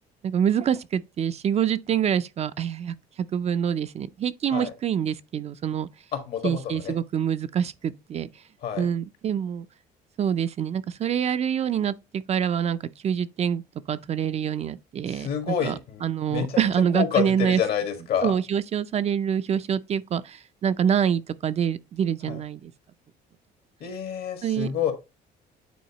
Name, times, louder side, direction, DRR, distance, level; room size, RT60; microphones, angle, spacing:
voice 1, 0.2-5.9 6.4-8.3 8.8-9.7 10.2-12.8 13.0-13.6 13.9-15.7 16.0-17.6 18.2-22.7 24.4-24.9, right 8 dB, 40° right, 0.4 m, -26 dB
voice 2, 6.1-6.9 8.6-8.9 15.1-16.0 16.3-16.6 16.9-18.3 22.3-22.4 23.8-24.9, left 8 dB, 70° left, 1.7 m, -28 dB
9.2 x 3.9 x 2.9 m
cardioid pair, 110°, 17 cm